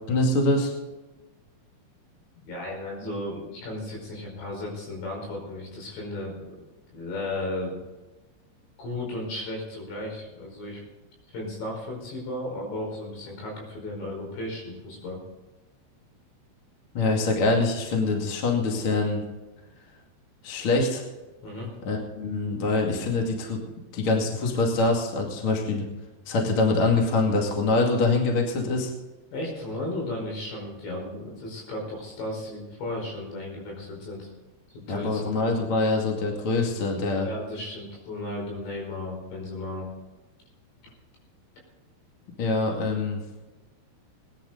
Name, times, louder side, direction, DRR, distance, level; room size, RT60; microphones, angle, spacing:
voice 1, 0.1-0.7 16.9-19.2 20.4-21.0 21.9-23.6 23.9-25.8 26.3-28.9 34.9-37.3 42.4-43.2, left 3 dB, 40° left, 0 dB, 2.3 m, -24 dB
voice 2, 2.4-6.6 6.9-7.8 8.8-10.8 11.3-15.2 21.4-21.7 29.3-34.3 34.7-35.5 37.1-40.0, left 1 dB, 70° left, -1 dB, 7.1 m, -35 dB
19.5 x 11.5 x 4.0 m, 1.1 s
omnidirectional pair, 5.4 m